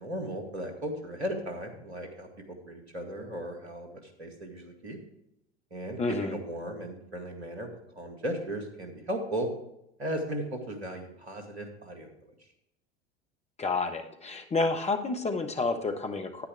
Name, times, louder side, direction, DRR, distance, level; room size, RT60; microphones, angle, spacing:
voice 1, 0.0-5.0 5.7-7.7 8.0-9.5 10.0-12.1, right 1 dB, 80° right, 4 dB, 2.1 m, -36 dB
voice 2, 6.0-6.4 13.6-16.5, left 3 dB, 20° left, 4 dB, 1.3 m, -30 dB
10.0 x 9.6 x 3.5 m, 0.79 s
figure-of-eight pair, 75°, 33 cm